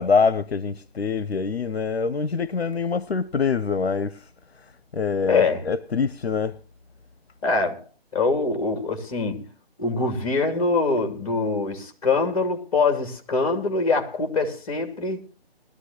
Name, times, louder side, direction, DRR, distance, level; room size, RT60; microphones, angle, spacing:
voice 1, 0.0-4.2 4.9-6.6, left 5 dB, 85° left, 0.8 m, -24 dB
voice 2, 5.3-5.6 7.4-7.8 8.1-9.5 9.8-15.2, left 3 dB, 35° left, 2.8 m, -24 dB
21.0 x 13.5 x 3.0 m
figure-of-eight pair, 155°, 31 cm